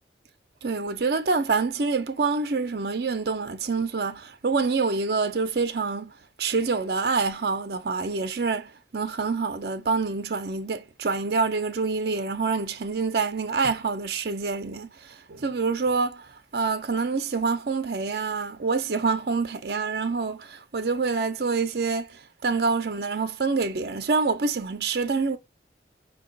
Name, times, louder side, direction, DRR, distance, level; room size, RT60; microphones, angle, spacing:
voice 1, 0.6-6.1 6.4-14.9 15.3-16.2 16.5-22.1 22.4-25.4, right 4 dB, 60° right, 0.5 m, -26 dB
5.9 x 2.3 x 3.7 m
head